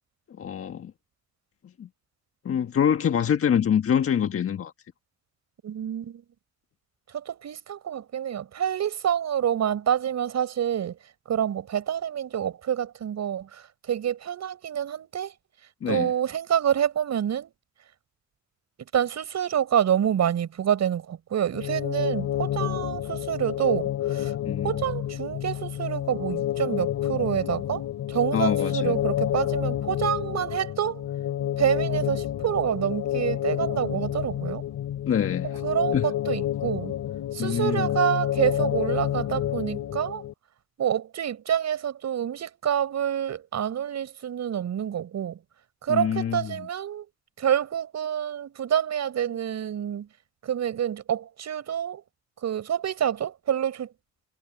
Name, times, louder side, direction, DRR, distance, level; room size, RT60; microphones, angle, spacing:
voice 1, 0.4-0.9 1.8-1.9 2.4-4.7 15.8-16.1 24.4-24.8 28.3-29.0 35.1-35.6 35.9-36.1 37.4-38.0 45.9-46.7, left 8 dB, 50° left, 1.5 m, -25 dB
voice 2, 5.6-6.2 7.1-11.0 11.3-15.3 15.9-17.5 18.9-24.3 24.6-27.8 28.1-31.0 31.6-34.6 35.6-36.9 37.3-40.2 40.8-45.4 45.8-47.1 47.4-50.1 50.4-52.0 52.4-53.9, right 9 dB, 60° right, 6.3 m, -27 dB
sound 1, 21.5-40.3, left 12 dB, 75° left, 2.9 m, -29 dB
cardioid pair, 90°, 30 cm